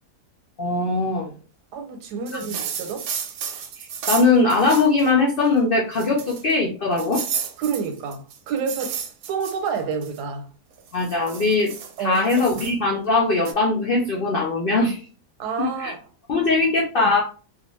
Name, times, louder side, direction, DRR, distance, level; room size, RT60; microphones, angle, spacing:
voice 1, 0.6-1.3 2.3-2.4 3.8-7.2 10.9-11.7 12.0-15.0 15.6-15.9 16.3-17.2, left 3 dB, 80° left, 0.5 m, -21 dB
voice 2, 1.7-3.1 7.6-9.0 9.3-10.5 12.0-12.6 15.4-16.0 17.0-17.1, right 6 dB, 90° right, 1.2 m, -29 dB
sound 1, 2.3-5.1 5.4-5.5 5.9-6.5 7.0-10.2 10.8-12.7 13.4-13.5, right 7 dB, 70° right, 1.0 m, -32 dB
2.5 x 2.4 x 3.0 m
omnidirectional pair, 1.7 m